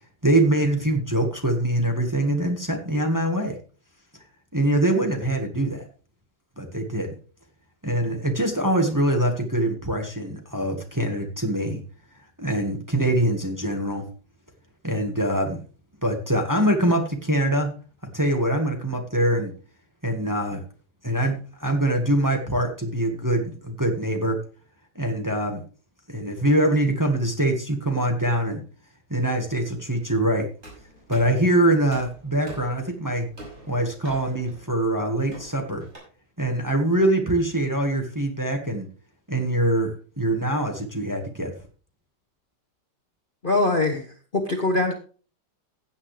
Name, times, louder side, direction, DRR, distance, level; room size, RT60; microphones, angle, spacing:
voice 1, 0.2-3.5 4.5-5.9 6.6-7.1 7.8-11.8 12.4-14.1 14.8-15.6 16.0-17.7 18.1-19.5 20.0-20.6 21.0-24.4 24.9-25.6 26.1-28.6 29.1-30.5 31.1-33.3 33.7-35.8 36.4-38.9 39.3-41.5, right 1 dB, 10° right, 3 dB, 1.5 m, -23 dB
sound 1, 30.6-36.0, right 1 dB, 35° right, 6.5 m, -45 dB
voice 2, 43.4-44.9, left 2 dB, 35° left, 4 dB, 1.2 m, -23 dB
15.5 x 8.7 x 3.3 m, 0.38 s
omnidirectional pair, 1.9 m